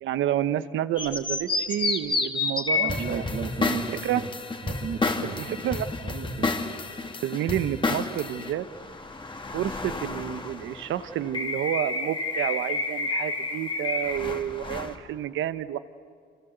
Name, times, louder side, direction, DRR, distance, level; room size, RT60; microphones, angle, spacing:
voice 1, 0.0-3.2 4.0-4.2 5.4-5.9 7.2-8.7 9.5-15.8, right 11 dB, 80° right, 13 dB, 1.0 m, -29 dB
sound 1, 1.0-14.9, left 3 dB, 25° left, 2.7 m, -30 dB
voice 2, 2.7-4.2 4.6-5.7 6.0-6.6, right 6 dB, 65° right, 0 dB, 2.8 m, -34 dB
27.0 x 27.0 x 8.1 m, 2.1 s
cardioid pair, 90°, 20 cm